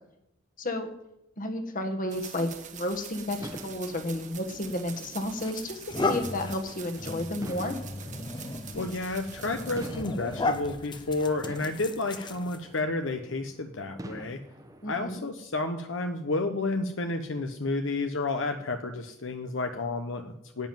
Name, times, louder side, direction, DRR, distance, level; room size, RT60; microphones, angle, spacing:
voice 1, 0.6-0.9 1.4-7.8 14.8-15.2, left 1 dB, 45° left, 6 dB, 1.6 m, -32 dB
sound 1, 2.1-9.9, right 8 dB, 40° right, 1.2 m, -45 dB
sound 2, 3.4-15.2, right 1 dB, 20° right, 1.1 m, -47 dB
sound 3, 4.6-4.8 5.4-12.8, left 2 dB, 25° left, 0.8 m, -35 dB
voice 2, 8.7-14.4 14.9-20.7, left 2 dB, 70° left, 6 dB, 1.0 m, -31 dB
11.0 x 7.4 x 9.2 m, 0.85 s
head